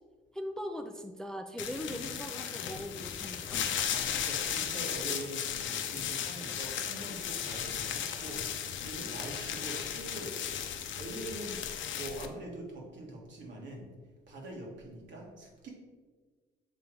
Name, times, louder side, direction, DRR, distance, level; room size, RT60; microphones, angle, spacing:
voice 1, 0.3-3.8, equal, 5° left, 6 dB, 0.4 m, -40 dB
sound 1, 1.6-12.3, left 9 dB, 70° left, 0.6 m, -36 dB
voice 2, 3.9-13.9 14.3-15.7, right 1 dB, 70° right, -1 dB, 1.8 m, -44 dB
6.9 x 3.7 x 4.5 m, 1.4 s
cardioid pair, 90°, 20 cm